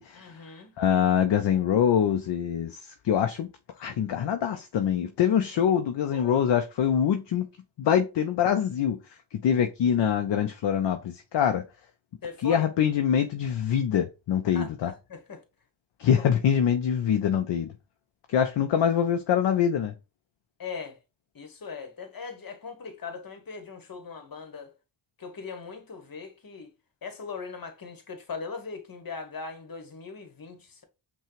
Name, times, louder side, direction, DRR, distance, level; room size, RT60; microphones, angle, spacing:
voice 1, 0.1-0.7 6.1-6.4 12.2-12.6 14.4-15.4 20.6-21.0 21.3-24.7 25.2-26.7 27.0-30.8, left 5 dB, 45° left, 1.2 m, -39 dB
voice 2, 0.8-3.5 3.8-7.5 7.8-9.0 9.4-11.6 12.4-14.9 16.0-17.7 18.3-19.9, left 8 dB, 65° left, 0.6 m, -24 dB
5.6 x 2.3 x 3.1 m
cardioid pair, 60°, 46 cm